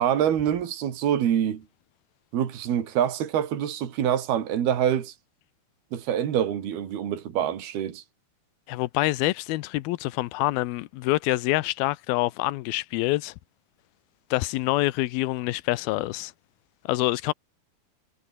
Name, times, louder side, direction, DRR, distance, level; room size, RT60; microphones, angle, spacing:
voice 1, 0.0-1.6 2.3-5.1 5.9-8.0, right 9 dB, 80° right, 4.4 m, -25 dB
voice 2, 8.7-13.3 14.3-16.3 16.9-17.3, left 19 dB, 80° left, 2.6 m, -26 dB
omnidirectional pair, 4.5 m